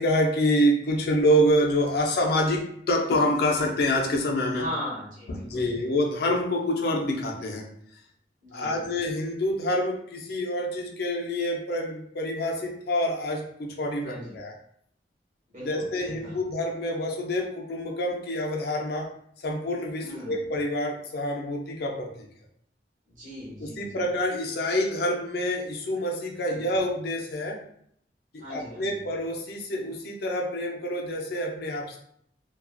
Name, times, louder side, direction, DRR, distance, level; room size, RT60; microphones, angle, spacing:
voice 1, 0.0-4.7 5.4-7.6 8.5-14.5 15.6-19.1 19.4-22.1 23.6-27.6 28.3-32.0, equal, 60° left, 1 dB, 0.5 m, -27 dB
voice 2, 4.5-5.8 8.4-8.9 14.0-14.4 15.5-16.4 20.0-20.4 23.1-24.0 26.5-26.6 28.4-29.0, left 1 dB, 45° right, -5 dB, 1.0 m, -39 dB
2.4 x 2.3 x 2.3 m, 0.67 s
head